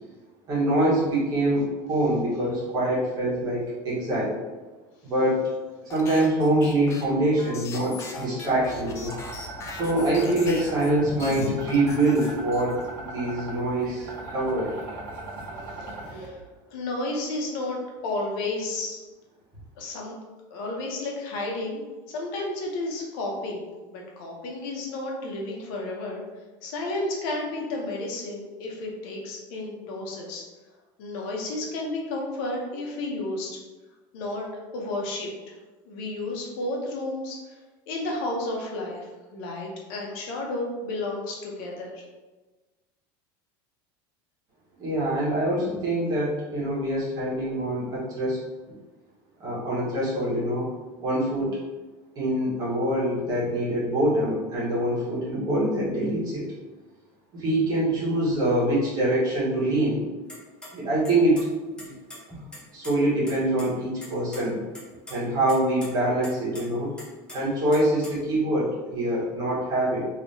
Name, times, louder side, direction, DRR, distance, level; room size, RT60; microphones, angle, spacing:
voice 1, 0.5-4.4 5.0-5.5 5.8-9.1 9.7-14.7 44.8-48.4 49.4-50.7 51.0-51.6 52.1-56.4 57.3-60.0 60.7-61.4 61.8-61.9 62.3-62.4 62.7-64.6 65.1-66.9 67.3-70.1, right 1 dB, 35° right, -7 dB, 1.3 m, -25 dB
sound 1, 5.9-10.9 11.2-12.9, left 3 dB, 25° left, 0.4 m, -40 dB
sound 2, 8.5-16.3, right 2 dB, 70° right, 0.8 m, -39 dB
voice 2, 15.9-16.4 16.7-19.0 19.8-20.2 20.5-21.8 22.1-23.6 23.9-26.2 26.6-30.4 31.0-33.6 34.1-34.5 34.7-35.3 35.9-37.6 37.9-39.1 39.3-42.0, left 2 dB, 70° left, -1 dB, 0.8 m, -32 dB
sound 3, 60.3-60.7 61.0-61.5 61.8-62.9 63.3-63.4 63.6-63.7 64.0-64.4 64.7-65.2 65.5-65.9 66.2-66.6 67.0-68.4, left 1 dB, 5° left, 0.8 m, -42 dB
3.3 x 2.9 x 2.7 m, 1.2 s
supercardioid pair, 150°, 12 cm